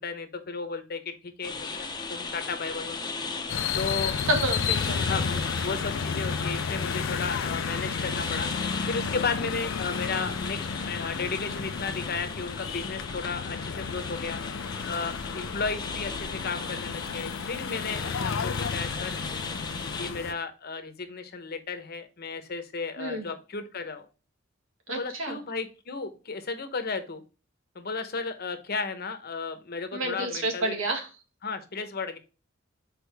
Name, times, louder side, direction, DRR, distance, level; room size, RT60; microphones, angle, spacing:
voice 1, 0.0-3.1 3.8-4.1 5.0-8.5 8.9-10.6 10.9-14.4 14.9-19.2 19.9-24.0 24.9-27.2 27.7-30.7 31.4-32.2, left 4 dB, 50° left, 8 dB, 0.9 m, -34 dB
sound 1, 1.4-20.1, left 4 dB, 20° left, 0.8 m, -37 dB
sound 2, 3.5-20.3, left 6 dB, 75° left, 0.5 m, -32 dB
voice 2, 4.0-5.1 23.0-23.3 24.9-25.4 29.9-31.1, right 1 dB, 80° right, 3 dB, 1.9 m, -29 dB
6.4 x 4.4 x 3.4 m, 0.33 s
head